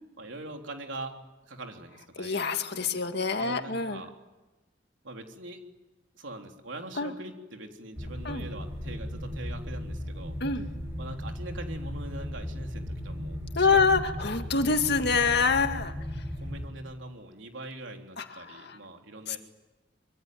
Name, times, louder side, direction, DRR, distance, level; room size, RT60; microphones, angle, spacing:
voice 1, 0.2-1.1 1.5-2.4 2.8-3.1 3.4-4.1 5.0-5.6 6.2-10.4 11.0-14.2 16.4-19.4, right 2 dB, 85° right, 3 dB, 3.5 m, -42 dB
voice 2, 2.2-4.0 7.0-7.1 8.2-8.4 10.4-10.7 13.6-15.9 18.2-18.8 19.3-19.4, left 4 dB, 65° left, 6 dB, 2.2 m, -26 dB
sound 1, 7.9-16.7, equal, 15° right, 5.9 m, -36 dB
25.0 x 24.5 x 9.4 m, 1.1 s
head